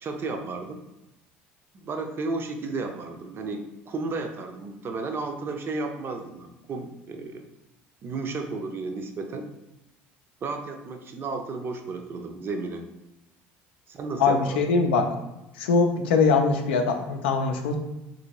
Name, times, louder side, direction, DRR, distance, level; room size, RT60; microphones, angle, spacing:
voice 1, 0.0-0.8 1.7-7.5 8.0-9.5 10.4-12.9 13.9-14.6, right 3 dB, 40° right, 5 dB, 0.5 m, -33 dB
voice 2, 14.2-15.1 15.6-17.8, left 4 dB, 90° left, 5 dB, 0.4 m, -22 dB
2.9 x 2.6 x 2.9 m, 0.95 s
hypercardioid pair, 75°, 6 cm